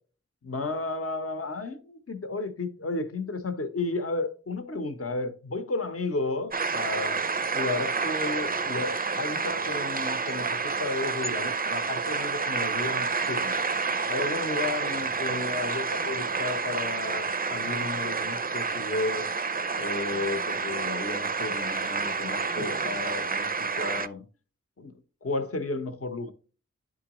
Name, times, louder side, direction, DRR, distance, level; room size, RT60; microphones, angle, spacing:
voice 1, 0.4-7.2 7.5-13.6 14.1-19.3 19.7-24.2 24.8-24.9 25.2-26.3, left 3 dB, 50° left, 0.8 m, -33 dB
sound 1, 6.5-24.1, right 4 dB, 30° right, 0.4 m, -29 dB
10.5 x 3.8 x 3.0 m
wide cardioid pair, 55°, 29 cm